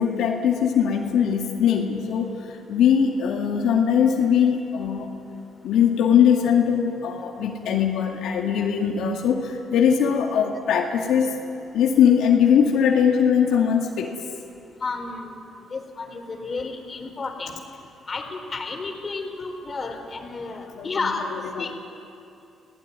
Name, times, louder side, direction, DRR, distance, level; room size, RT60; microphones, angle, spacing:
voice 1, 0.0-2.3 2.7-5.1 5.6-11.3 11.7-14.1 20.8-20.9 21.6-21.7, left 8 dB, 85° left, 0 dB, 2.3 m, -20 dB
voice 2, 14.8-15.3 15.7-17.5 18.1-21.2 21.6-21.7, left 3 dB, 35° left, 3 dB, 4.3 m, -31 dB
27.0 x 18.0 x 9.7 m, 2.7 s
cardioid pair, 90°, 0 cm